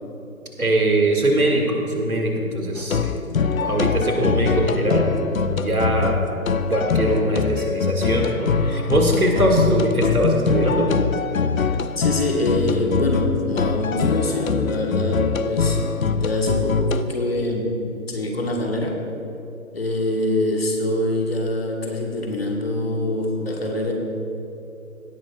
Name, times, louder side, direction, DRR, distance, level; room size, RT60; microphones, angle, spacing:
voice 1, 0.6-3.3 3.6-5.0 5.4-6.4 6.7-10.9, right 1 dB, 75° right, 0 dB, 2.1 m, -21 dB
sound 1, 2.8-17.0, left 5 dB, 70° left, 0.6 m, -23 dB
voice 2, 12.0-15.8 16.2-19.0 19.7-23.9, left 1 dB, 45° left, 1 dB, 1.3 m, -24 dB
17.0 x 9.3 x 2.3 m, 2.8 s
figure-of-eight pair, 150°, 43 cm